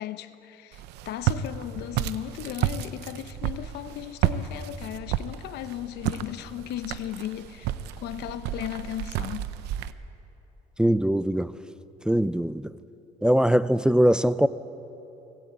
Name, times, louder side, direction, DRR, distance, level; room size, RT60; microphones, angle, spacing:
voice 1, 0.0-7.7 8.0-9.4, left 12 dB, 80° left, 0.9 m, -36 dB
Walk footsteps, 0.7-9.9, right 11 dB, 90° right, 0.7 m, -31 dB
voice 2, 10.8-11.5 12.1-12.7 13.2-14.5, equal, 5° right, 0.4 m, -21 dB
19.0 x 16.5 x 8.7 m
cardioid pair, 110°, 17 cm